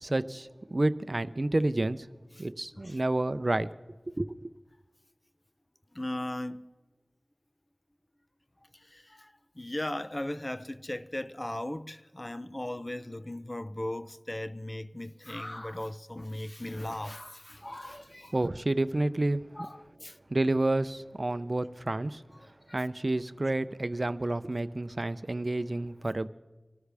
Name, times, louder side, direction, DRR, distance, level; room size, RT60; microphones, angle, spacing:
voice 1, 0.0-2.1 2.4-3.7 4.2-4.5 18.3-19.5 20.3-22.2 22.7-26.3, right 2 dB, 50° right, 0.5 m, -29 dB
voice 2, 5.9-6.6 8.9-18.4 19.6-20.2 22.7-22.8, left 1 dB, 30° left, 0.6 m, -37 dB
25.0 x 13.0 x 3.5 m
wide cardioid pair, 50°, 0 cm